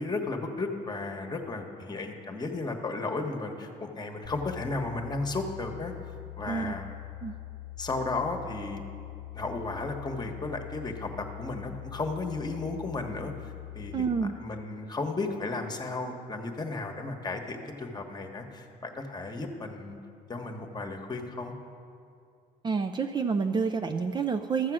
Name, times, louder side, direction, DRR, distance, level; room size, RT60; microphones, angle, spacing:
voice 1, 0.0-5.9 6.4-6.9 7.8-8.8 9.3-20.0 20.3-21.5, left 3 dB, 25° left, 4 dB, 1.2 m, -34 dB
sound 1, 4.2-14.3, left 15 dB, 50° left, 0.7 m, -43 dB
voice 2, 13.9-14.3 22.6-24.7, right 5 dB, 25° right, 6 dB, 0.4 m, -28 dB
13.5 x 7.4 x 6.2 m, 2.4 s
cardioid pair, 110°, 17 cm